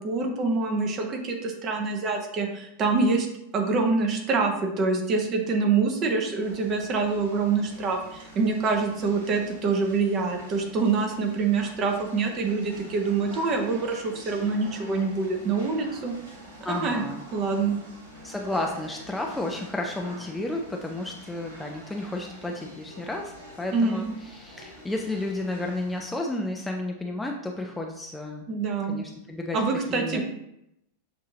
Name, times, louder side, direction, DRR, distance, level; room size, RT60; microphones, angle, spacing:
voice 1, 0.0-3.3 3.5-16.1 16.7-17.0 17.3-17.8 23.7-24.1 28.5-29.0 29.5-30.2, right 4 dB, 30° right, 3 dB, 0.8 m, -25 dB
sound 1, 6.4-26.0, equal, 70° right, 1.7 m, -46 dB
voice 2, 16.6-17.2 18.2-28.5 28.9-29.6 29.9-30.2, left 2 dB, 5° left, 1 dB, 0.4 m, -32 dB
6.4 x 2.7 x 2.8 m, 0.80 s
figure-of-eight pair, 90°, 0 cm